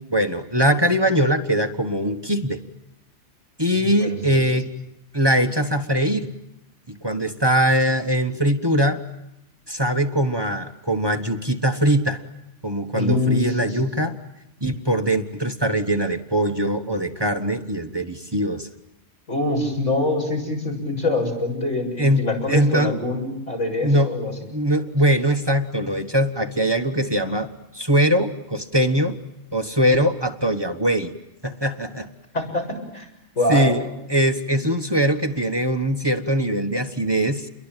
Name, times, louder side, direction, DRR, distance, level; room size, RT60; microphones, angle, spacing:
voice 1, 0.1-2.6 3.6-4.7 5.1-6.3 6.9-9.0 9.7-12.2 12.6-14.2 14.6-18.7 22.0-22.9 23.8-24.1 24.5-29.2 29.5-31.1 31.4-32.1 33.5-33.8 34.1-37.5, equal, 20° right, 8 dB, 1.3 m, -21 dB
voice 2, 3.7-4.4 13.0-13.7 19.3-24.3 32.3-32.6 32.9-33.1 33.4-33.9, left 2 dB, 90° left, 2 dB, 7.3 m, -24 dB
29.5 x 22.5 x 9.1 m, 0.87 s
omnidirectional pair, 1.2 m